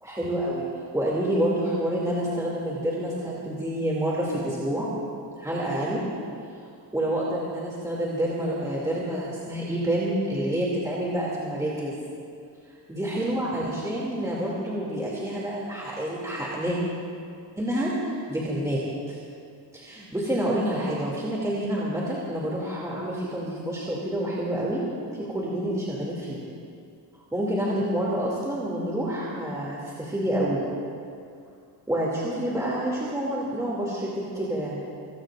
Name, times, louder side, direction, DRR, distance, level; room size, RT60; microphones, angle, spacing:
voice 1, 0.0-0.7 0.9-4.9 5.4-6.0 6.9-12.0 12.9-16.8 17.6-18.8 19.1-19.2 19.7-24.8 25.1-26.4 27.3-30.6 31.9-34.9, right 1 dB, 10° right, -6 dB, 2.7 m, -28 dB
26.0 x 18.0 x 2.6 m, 2.4 s
cardioid pair, 115°, 41 cm